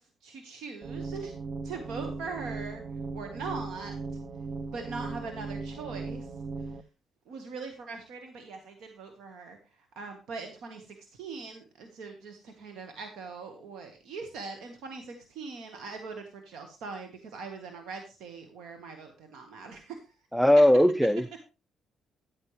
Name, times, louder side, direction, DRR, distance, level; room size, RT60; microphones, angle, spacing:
voice 1, 0.0-1.3 1.6-2.8 3.1-4.0 4.7-6.3 6.6-6.7 7.3-20.0, right 4 dB, 80° right, 1.5 m, -41 dB
sound 1, 0.8-6.8, right 3 dB, 45° right, 0.6 m, -38 dB
voice 2, 20.3-21.4, left 1 dB, ahead, 0.4 m, -20 dB
11.0 x 8.8 x 3.3 m
cardioid pair, 90°, 0 cm